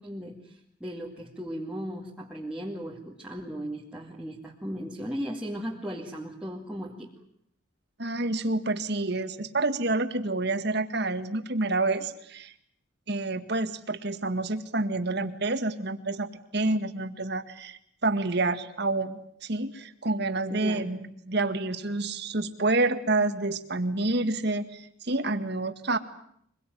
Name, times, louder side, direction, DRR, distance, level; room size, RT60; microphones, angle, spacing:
voice 1, 0.0-7.1 20.5-20.8, equal, 5° right, -4 dB, 2.2 m, -37 dB
voice 2, 8.0-12.5 13.1-26.0, right 2 dB, 55° right, 9 dB, 1.9 m, -28 dB
24.5 x 22.0 x 9.3 m, 0.69 s
head